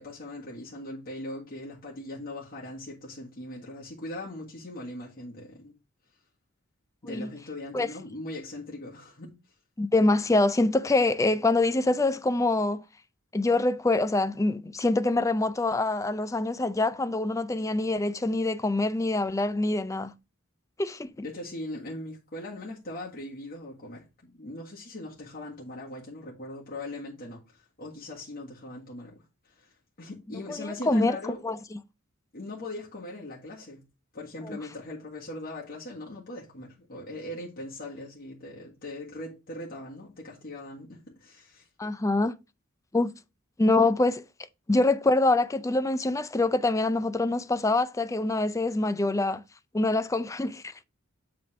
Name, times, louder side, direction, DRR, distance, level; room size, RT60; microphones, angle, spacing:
voice 1, 0.0-5.7 7.0-9.3 21.2-31.4 32.3-33.8 34.1-41.7, left 1 dB, 45° left, 1.7 m, -40 dB
voice 2, 9.8-12.8 13.3-20.1 20.8-21.3 30.3-31.2 31.4-31.8 34.4-34.6 41.8-42.4 42.9-43.1 43.6-44.2 44.7-49.4 49.7-50.7, left 2 dB, 15° left, 0.4 m, -25 dB
7.8 x 3.8 x 4.7 m
head